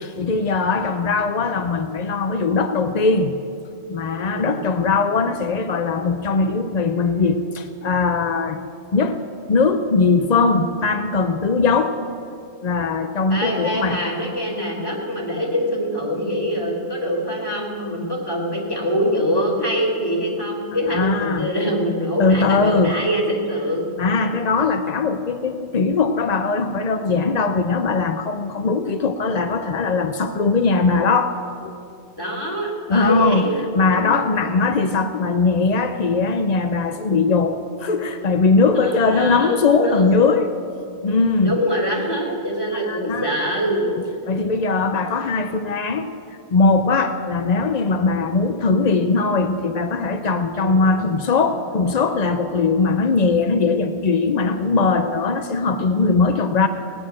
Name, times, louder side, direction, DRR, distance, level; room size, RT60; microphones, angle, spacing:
voice 1, 0.0-3.4 3.9-8.6 8.9-9.2 9.5-12.0 12.6-14.0 20.9-21.5 22.2-23.0 24.0-31.4 31.6-31.7 32.9-40.5 41.0-41.6 42.7-43.3 44.3-46.1 46.5-56.7, left 4 dB, 55° left, 8 dB, 0.4 m, -20 dB
voice 2, 4.2-4.5 13.3-23.9 32.2-34.2 38.8-40.1 41.4-43.9 50.5-50.7, equal, 15° left, -3 dB, 3.2 m, -24 dB
18.0 x 9.9 x 7.5 m, 2.4 s
omnidirectional pair, 1.5 m